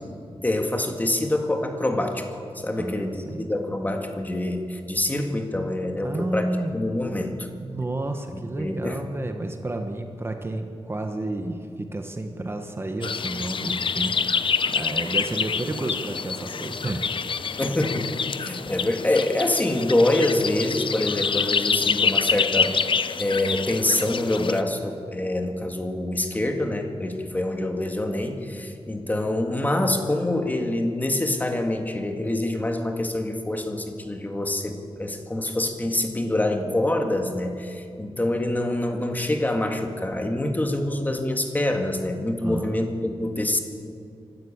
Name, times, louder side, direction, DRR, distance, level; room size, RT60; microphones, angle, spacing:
voice 1, 0.4-6.5 6.7-7.5 8.3-9.0 17.6-18.1 18.4-22.8 23.2-43.6, left 1 dB, 15° left, 4 dB, 1.8 m, -26 dB
voice 2, 2.8-3.5 6.0-6.7 7.6-17.6 18.4-18.5 42.4-42.8, right 2 dB, 25° right, 5 dB, 1.2 m, -31 dB
sound 1, 13.0-24.6, left 6 dB, 55° left, 0.8 m, -27 dB
25.5 x 12.5 x 8.7 m, 2.4 s
wide cardioid pair, 150°, 10 cm